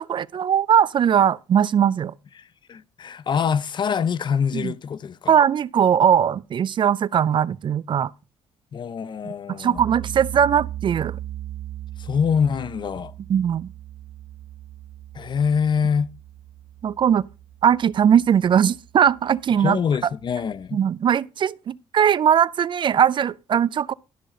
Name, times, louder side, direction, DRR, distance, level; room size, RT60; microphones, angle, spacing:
voice 1, 0.1-2.1 4.5-4.7 5.3-8.1 9.5-11.2 13.3-13.7 16.8-17.2 17.6-19.8 20.7-23.9, right 8 dB, 45° right, 0.4 m, -20 dB
voice 2, 2.4-5.4 8.7-9.8 12.0-13.1 15.1-16.1 19.6-20.8, left 7 dB, 45° left, 0.6 m, -25 dB
sound 1, 9.8-20.6, right 12 dB, 65° right, 2.4 m, -38 dB
12.5 x 5.7 x 5.0 m
cardioid pair, 85°, 11 cm